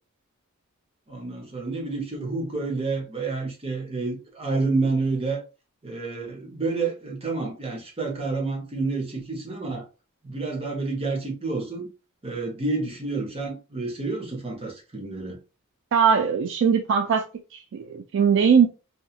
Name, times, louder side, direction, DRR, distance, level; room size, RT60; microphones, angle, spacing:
voice 1, 1.1-5.4 5.8-9.8 10.2-11.9 12.2-15.4, right 3 dB, 25° right, 0.7 m, -29 dB
voice 2, 15.9-17.2 17.5-18.7, right 6 dB, 55° right, 0.3 m, -20 dB
2.8 x 2.3 x 2.3 m
head